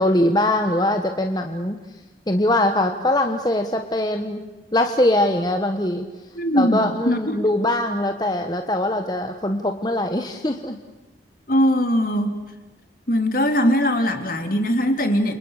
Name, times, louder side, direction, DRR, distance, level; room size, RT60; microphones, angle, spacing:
voice 1, 0.0-1.8 2.3-4.4 4.7-6.1 6.6-10.8, left 1 dB, 20° left, 5 dB, 1.3 m, -22 dB
voice 2, 6.3-7.4 11.5-12.4 13.1-15.3, equal, 50° left, 6 dB, 3.3 m, -20 dB
30.0 x 27.5 x 6.7 m, 1.1 s
head